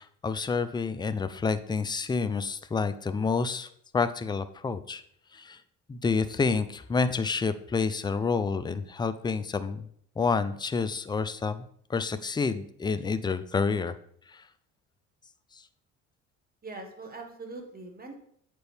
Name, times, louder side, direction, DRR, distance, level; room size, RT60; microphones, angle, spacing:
voice 1, 0.0-3.7 3.9-5.0 5.3-5.6 5.9-9.9 10.2-11.6 11.9-13.9, left 4 dB, 15° left, 12 dB, 0.4 m, -28 dB
voice 2, 16.6-18.2, right 3 dB, 25° right, 3 dB, 1.5 m, -42 dB
7.8 x 4.5 x 3.4 m, 0.66 s
supercardioid pair, 85°, 34 cm